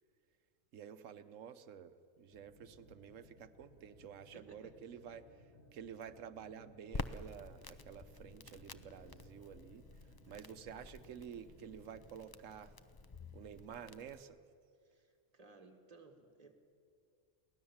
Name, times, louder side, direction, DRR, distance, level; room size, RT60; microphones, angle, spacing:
voice 1, 0.7-9.8 10.3-12.7 13.3-14.4, right 8 dB, 90° right, 12 dB, 1.2 m, -51 dB
sound 1, 2.3-12.0, left 1 dB, 60° left, 2.3 m, -63 dB
voice 2, 4.3-4.8 10.3-10.6 14.8-16.5, right 3 dB, 30° right, 5 dB, 1.9 m, -60 dB
Crackle, 6.9-14.2, left 3 dB, 35° left, 0.3 m, -49 dB
23.0 x 17.5 x 7.2 m, 2.3 s
omnidirectional pair, 1.3 m